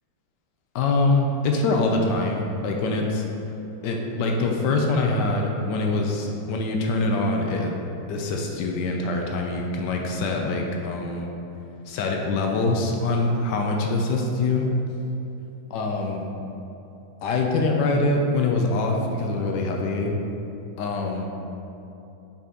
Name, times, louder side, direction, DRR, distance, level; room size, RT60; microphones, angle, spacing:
voice 1, 0.7-3.3 3.8-7.7 8.1-11.3 11.9-14.7 15.7-16.3 17.2-20.2 20.8-21.3, left 2 dB, 75° left, 1 dB, 1.0 m, -24 dB
5.9 x 4.2 x 3.8 m, 2.8 s
omnidirectional pair, 2.2 m